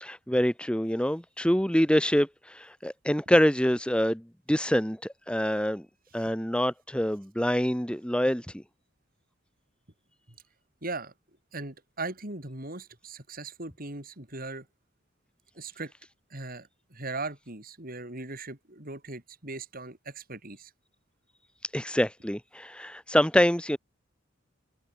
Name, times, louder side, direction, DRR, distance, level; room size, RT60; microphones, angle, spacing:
voice 1, 0.0-4.2 4.5-5.8 6.1-8.5 21.7-23.8, equal, 5° left, 1.9 m, -25 dB
voice 2, 10.8-11.1 11.5-14.7 15.6-15.9 16.3-20.7, right 3 dB, 45° right, 5.5 m, -39 dB
open air
head